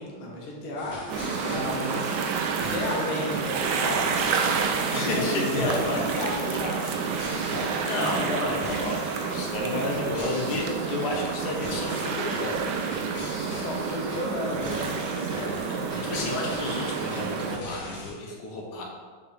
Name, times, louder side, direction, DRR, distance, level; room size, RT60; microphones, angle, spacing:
voice 1, 0.0-4.5 5.2-8.7 13.5-16.1, left 1 dB, 80° left, -2 dB, 1.9 m, -34 dB
sound 1, 0.8-18.1, left 1 dB, 45° left, 2.2 m, -42 dB
sound 2, 1.1-17.6, right 5 dB, 75° right, 1.0 m, -29 dB
voice 2, 4.9-6.0 6.5-6.6 7.8-12.9 15.4-15.7 16.0-18.8, left 2 dB, 60° left, -2 dB, 1.5 m, -31 dB
7.1 x 4.5 x 3.5 m, 1.5 s
omnidirectional pair, 2.3 m